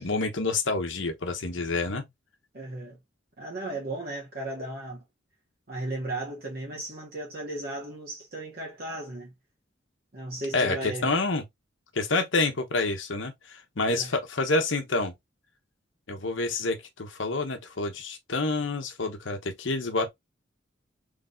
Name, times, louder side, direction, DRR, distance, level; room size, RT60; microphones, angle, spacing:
voice 1, 0.0-2.1 10.5-11.4 11.9-15.1 16.1-20.1, left 3 dB, 75° left, 1.0 m, -28 dB
voice 2, 2.5-3.0 3.4-5.0 5.7-9.3 10.1-11.1 13.9-14.1, right 2 dB, 50° right, 1.3 m, -35 dB
4.0 x 3.3 x 2.5 m
head